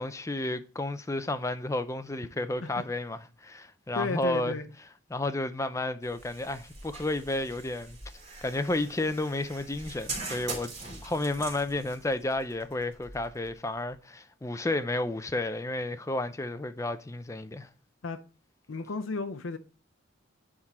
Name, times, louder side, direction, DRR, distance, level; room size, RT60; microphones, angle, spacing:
voice 1, 0.0-4.5 5.1-8.0 8.4-10.7 11.0-17.7, left 2 dB, 15° left, 0.5 m, -32 dB
voice 2, 4.0-4.6 18.0-18.2 18.7-19.6, left 3 dB, 90° left, 0.7 m, -33 dB
sound 1, 6.0-13.9, right 3 dB, 35° right, 3.3 m, -43 dB
10.5 x 3.8 x 4.2 m
head